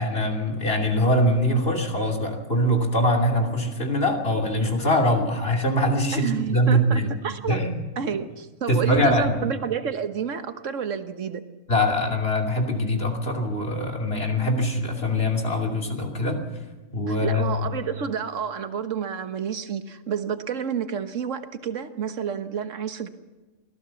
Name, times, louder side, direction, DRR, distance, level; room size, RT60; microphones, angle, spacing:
voice 1, 0.0-7.1 7.5-7.8 8.7-9.4 11.7-16.4 16.9-17.7, equal, 50° left, 2 dB, 3.2 m, -23 dB
voice 2, 6.1-7.6 8.0-11.5 17.1-23.1, right 7 dB, 70° right, 9 dB, 1.6 m, -30 dB
25.0 x 17.5 x 7.0 m, 1.2 s
omnidirectional pair, 1.3 m